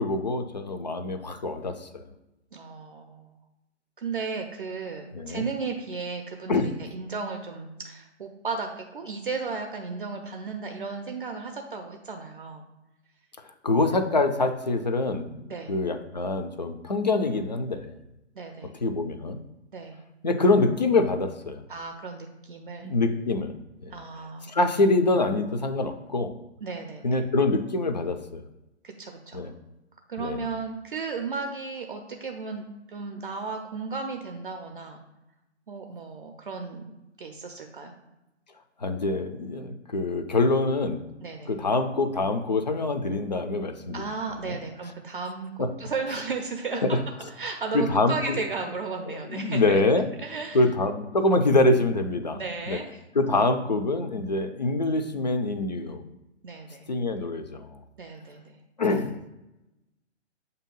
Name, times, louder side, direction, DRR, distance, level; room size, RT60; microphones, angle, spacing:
voice 1, 0.0-2.1 5.1-5.5 6.5-6.7 13.6-15.4 15.7-18.0 18.8-19.4 20.2-21.6 22.8-23.5 23.8-23.9 24.5-26.3 27.0-28.4 29.3-29.5 30.2-30.4 38.8-41.0 41.5-44.0 44.4-44.6 45.6-45.7 46.8-46.9 47.7-48.4 49.1-50.1 50.5-52.4 52.7-52.8 53.2-56.0 56.9-57.8 58.8-59.2, left 2 dB, 40° left, 7 dB, 0.4 m, -25 dB
voice 2, 2.5-3.4 4.0-12.6 15.4-15.7 18.4-18.7 19.7-20.0 21.7-22.9 23.9-24.5 26.6-27.2 28.8-29.4 30.1-35.0 35.7-36.9 37.2-37.9 41.2-41.5 43.9-45.5 45.8-47.0 47.4-49.8 50.2-50.6 52.3-53.0 56.4-56.9 58.0-58.6, right 4 dB, 45° right, 4 dB, 0.6 m, -34 dB
6.8 x 2.8 x 5.3 m, 0.94 s
figure-of-eight pair, 135°, 35 cm